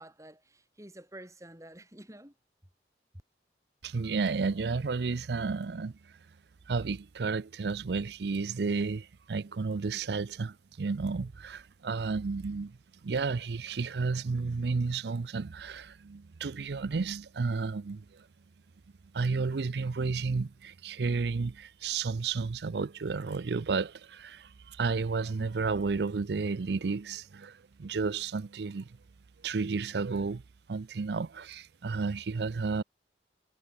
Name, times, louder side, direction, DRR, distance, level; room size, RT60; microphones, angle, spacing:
voice 1, 0.0-2.3, right 1 dB, 15° right, 4.3 m, -49 dB
voice 2, 3.8-5.9 6.7-12.8 13.0-18.2 19.1-28.9 29.4-30.4 30.7-32.8, right 4 dB, 70° right, 0.5 m, -32 dB
head